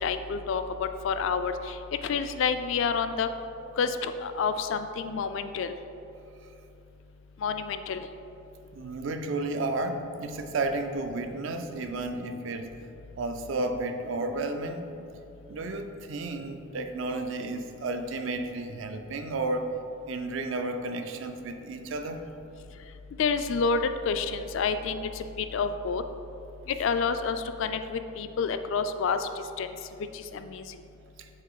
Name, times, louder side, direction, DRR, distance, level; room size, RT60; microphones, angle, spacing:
voice 1, 0.0-1.7 2.0-3.3 3.8-5.7 7.4-8.1 23.2-25.2 25.5-26.0 26.7-29.3 29.6-29.7 30.1-30.6, left 5 dB, 65° left, 9 dB, 0.3 m, -28 dB
voice 2, 8.7-12.7 13.2-14.9 15.5-19.8 20.1-22.4 31.2-31.3, right 2 dB, 65° right, 7 dB, 0.4 m, -32 dB
5.7 x 3.7 x 4.8 m, 2.8 s
head